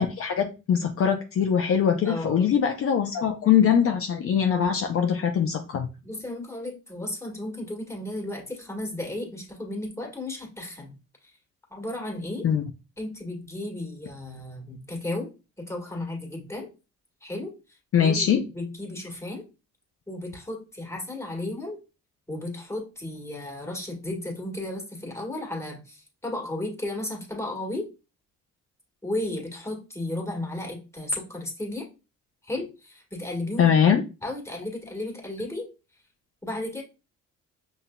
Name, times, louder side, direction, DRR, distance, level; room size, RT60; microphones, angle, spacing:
voice 1, 0.0-5.9 12.4-12.6 17.9-18.4 33.6-34.0, left 8 dB, 50° left, 4 dB, 0.5 m, -22 dB
voice 2, 2.0-2.5 6.0-10.9 11.7-12.5 13.0-15.3 15.6-16.7 17.2-17.5 18.0-19.4 20.1-21.8 22.3-27.9 29.0-31.9 32.4-33.7 34.2-35.7 36.4-36.8, left 1 dB, 10° left, 0 dB, 1.6 m, -34 dB
5.7 x 2.7 x 2.2 m, 0.30 s
cardioid pair, 90°, 30 cm